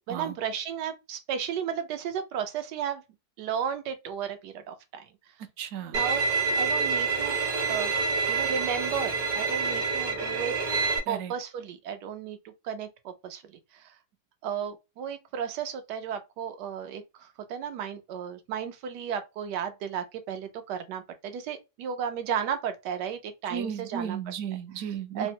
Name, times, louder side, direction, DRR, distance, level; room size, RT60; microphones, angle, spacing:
voice 1, 0.0-3.0 3.4-5.1 5.9-6.2 6.5-7.4 7.7-7.9 8.3-10.6 11.1-12.4 12.6-13.4 13.7-14.0 14.4-24.2 24.8-24.9 25.1-25.3, right 8 dB, 90° right, 1.2 m, -34 dB
voice 2, 5.6-6.0 11.1-11.3 23.5-25.3, right 8 dB, 70° right, 1.0 m, -34 dB
Bowed string instrument, 5.9-11.0, right 4 dB, 40° right, 0.7 m, -27 dB
3.5 x 2.1 x 2.7 m
omnidirectional pair, 1.8 m